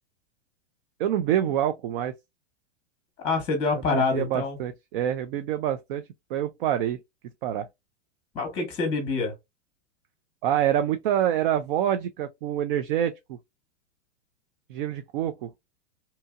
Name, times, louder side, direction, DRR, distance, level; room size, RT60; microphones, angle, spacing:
voice 1, 1.0-2.1 3.9-7.0 7.4-7.7 10.4-13.4 14.7-15.5, right 10 dB, 50° right, 0.4 m, -26 dB
voice 2, 3.2-4.6 8.3-9.3, left 4 dB, 15° left, 0.8 m, -26 dB
2.8 x 2.7 x 2.3 m
hypercardioid pair, 145°, 35 cm